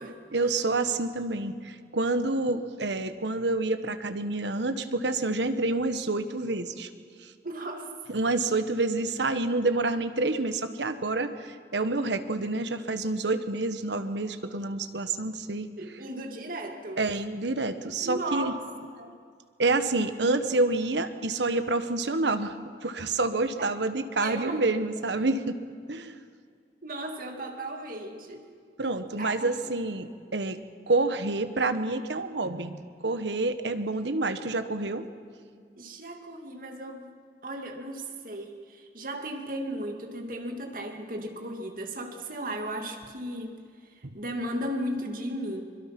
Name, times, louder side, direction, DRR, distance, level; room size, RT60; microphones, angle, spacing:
voice 1, 0.3-6.9 8.1-15.7 17.0-18.5 19.6-22.6 22.8-25.6 25.9-26.2 28.8-30.6 30.9-35.0, right 2 dB, 80° right, 10 dB, 1.2 m, -28 dB
voice 2, 7.4-7.9 15.8-17.0 18.0-18.6 18.9-19.1 23.6-23.7 24.2-24.6 26.8-28.4 29.2-29.6 35.8-37.1 37.4-43.6 43.9-45.6, right 1 dB, 50° right, 3 dB, 2.4 m, -35 dB
24.5 x 22.5 x 6.0 m, 2.1 s
head